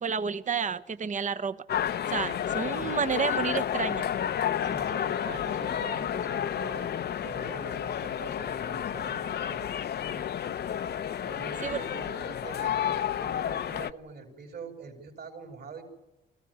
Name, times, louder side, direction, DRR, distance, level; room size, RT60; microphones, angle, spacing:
voice 1, 0.0-1.6 2.1-4.1 11.6-11.8, right 6 dB, 40° right, 12 dB, 1.1 m, -30 dB
sound 1, 1.7-13.9, left 9 dB, 55° left, 0.8 m, -31 dB
voice 2, 4.6-6.9 7.2-9.7 10.1-10.2 11.2-15.8, right 5 dB, 55° right, 4 dB, 5.3 m, -44 dB
25.0 x 15.5 x 9.6 m, 1.0 s
cardioid pair, 90°, 20 cm